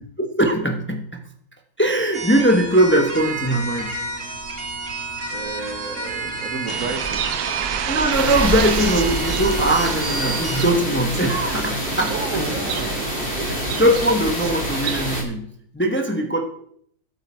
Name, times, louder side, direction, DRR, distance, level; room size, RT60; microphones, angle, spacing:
voice 1, 0.2-1.2 1.8-3.9 7.9-12.1 13.4-15.5 15.7-16.5, right 1 dB, 10° left, 3 dB, 1.0 m, -20 dB
sound 1, 2.1-10.6, right 2 dB, 40° right, 1.8 m, -29 dB
voice 2, 5.3-7.3 12.1-13.7, right 3 dB, 60° right, 7 dB, 1.6 m, -32 dB
Bird, 6.7-15.2, right 10 dB, 85° right, 1.2 m, -29 dB
sound 2, 8.1-15.2, left 1 dB, 45° left, 2.6 m, -28 dB
13.5 x 7.9 x 4.5 m, 0.66 s
omnidirectional pair, 1.6 m